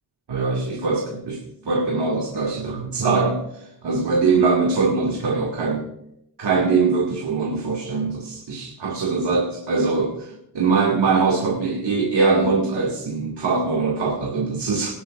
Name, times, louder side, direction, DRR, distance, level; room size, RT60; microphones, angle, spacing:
voice 1, 0.3-5.8 6.4-14.9, right 4 dB, 85° right, -2 dB, 2.0 m, -22 dB
20.5 x 11.5 x 2.4 m, 0.77 s
wide cardioid pair, 155°, 40 cm